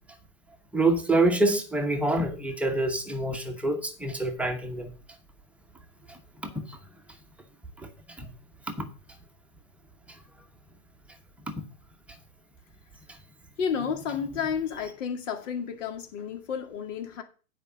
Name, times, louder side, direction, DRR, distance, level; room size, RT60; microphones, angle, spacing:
voice 1, 0.7-4.9 6.1-6.8 7.8-7.9 8.2-8.3 8.8-8.9 11.5-11.6, right 2 dB, 5° right, 1.0 m, -27 dB
voice 2, 13.6-17.2, left 7 dB, 55° left, 2.2 m, -31 dB
8.9 x 5.0 x 6.9 m
hypercardioid pair, 125°, 43 cm